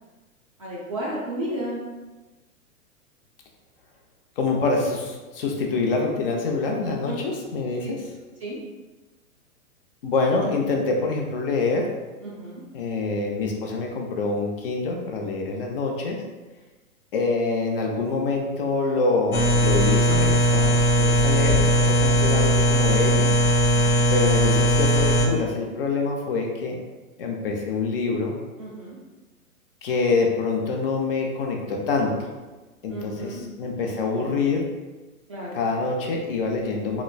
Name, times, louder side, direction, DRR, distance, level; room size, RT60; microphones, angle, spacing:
voice 1, 0.6-1.8 7.0-7.2 8.4-8.6 12.2-12.6 28.6-29.0 32.9-33.4 35.3-35.6, right 1 dB, 25° right, -7 dB, 0.3 m, -33 dB
voice 2, 4.4-8.1 10.0-11.9 12.7-16.2 17.1-23.3 24.1-26.8 27.2-28.4 29.8-32.3 32.8-34.6 35.6-37.0, left 3 dB, 40° left, 1 dB, 0.5 m, -25 dB
sound 1, 19.3-25.3, equal, 85° left, 0.7 m, -19 dB
3.1 x 3.0 x 2.2 m, 1.2 s
figure-of-eight pair, 110°, 43 cm